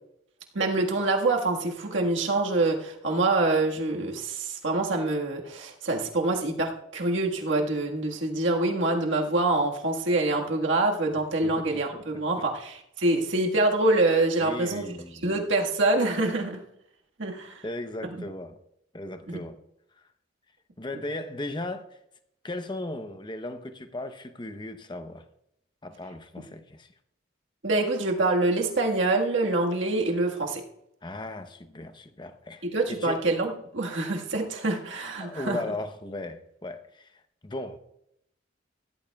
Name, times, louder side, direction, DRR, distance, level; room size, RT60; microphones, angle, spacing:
voice 1, 0.5-15.0 15.2-16.6 17.2-17.6 18.0-18.1 19.3-19.4 27.6-30.6 32.7-35.6, right 2 dB, 70° right, 1.6 m, -25 dB
voice 2, 11.4-11.8 14.4-15.2 17.6-18.6 18.9-19.6 20.0-20.1 20.8-22.0 22.4-25.2 25.8-26.9 31.0-33.3 35.2-37.8, left 2 dB, 25° left, 0.8 m, -37 dB
16.0 x 13.5 x 2.3 m
head